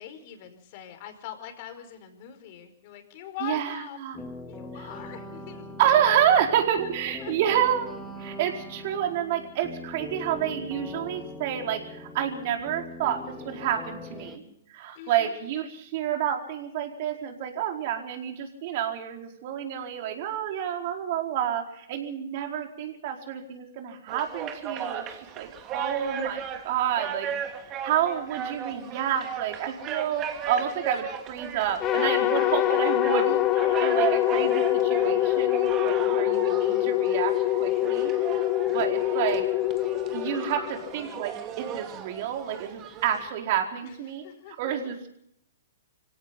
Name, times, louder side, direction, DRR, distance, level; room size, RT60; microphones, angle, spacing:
voice 1, 0.0-4.0 4.5-5.7 6.8-6.9 7.2-7.5 14.9-15.4 32.5-32.8 40.1-40.2 40.5-40.9 43.8-44.8, left 11 dB, 45° left, 8 dB, 4.8 m, -43 dB
voice 2, 3.4-4.2 5.8-7.9 8.2-13.2 13.4-14.4 14.7-27.6 27.8-37.3 37.6-38.4 38.7-39.4 40.1-44.2 44.6-44.9, right 9 dB, 50° right, 3 dB, 4.7 m, -29 dB
sound 1, 4.1-14.4, left 1 dB, 5° left, 3.4 m, -41 dB
sound 2, 24.1-43.3, right 8 dB, 30° right, 2.9 m, -36 dB
sound 3, 31.8-41.1, left 14 dB, 25° left, 1.7 m, -24 dB
26.0 x 17.0 x 5.8 m, 0.73 s
hypercardioid pair, 125°, 0 cm